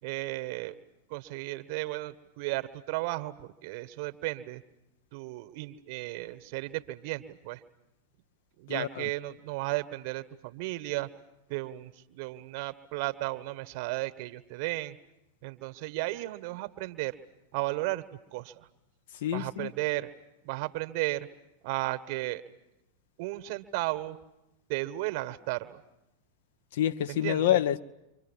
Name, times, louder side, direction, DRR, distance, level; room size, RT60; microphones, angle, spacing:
voice 1, 0.0-0.7 1.1-4.6 5.1-7.6 8.6-11.1 11.5-15.0 15.4-17.1 17.5-18.0 18.3-18.7 19.3-20.1 20.4-21.3 21.6-22.4 23.2-24.2 24.7-25.8 27.2-27.4, right 19 dB, 45° right, 1.5 m, -34 dB
voice 2, 8.7-9.1 19.1-19.7 26.7-27.8, left 11 dB, 55° left, 1.0 m, -27 dB
29.5 x 25.0 x 7.5 m
figure-of-eight pair, 90°, 0 cm